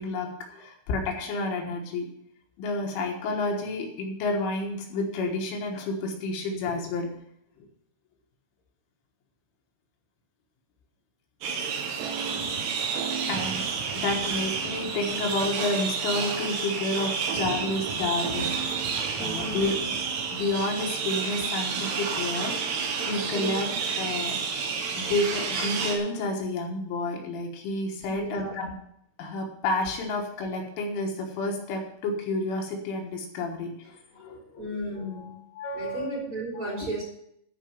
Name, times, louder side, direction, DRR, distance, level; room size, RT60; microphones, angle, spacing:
voice 1, 0.0-2.1 2.6-7.1 13.3-13.7 13.9-18.6 19.2-19.8 20.3-22.8 23.1-23.7 24.0-24.4 25.0-28.7 29.2-34.7 35.0-36.1 36.6-36.9, left 2 dB, 75° left, 1 dB, 3.8 m, -30 dB
sound 1, 11.4-26.0, right 5 dB, 65° right, 3.4 m, -30 dB
sound 2, 12.0-15.7 17.3-20.9, right 6 dB, 85° right, 3.8 m, -38 dB
voice 2, 19.2-19.9 23.3-23.6 28.1-28.5 34.6-35.3 35.7-37.0, right 1 dB, 30° right, -5 dB, 3.9 m, -34 dB
13.0 x 5.2 x 7.3 m, 0.72 s
omnidirectional pair, 5.8 m